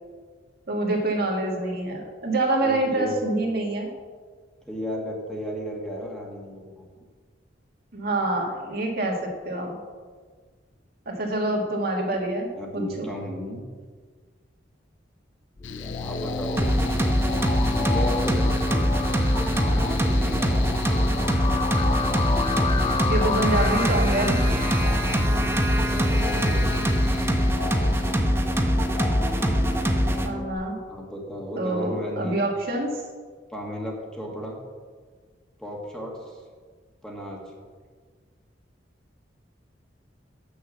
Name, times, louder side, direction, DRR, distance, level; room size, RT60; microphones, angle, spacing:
voice 1, 0.7-3.9 7.9-9.8 11.1-13.1 22.8-24.4 30.2-30.8 31.6-33.0, right 2 dB, 55° right, 0 dB, 1.8 m, -26 dB
voice 2, 2.6-3.1 4.7-6.8 12.6-13.6 16.0-17.1 17.6-18.9 19.5-20.7 25.7-26.9 30.9-32.4 33.5-34.6 35.6-36.4 37.0-37.5, equal, 5° left, -2 dB, 1.4 m, -34 dB
Mechanical fan, 15.6-28.2, left 4 dB, 80° left, 0.5 m, -36 dB
sound 1, 15.6-30.5, left 2 dB, 25° left, 0.5 m, -30 dB
sound 2, 16.6-30.3, equal, 15° right, 0.7 m, -23 dB
7.7 x 6.4 x 7.0 m, 1.5 s
head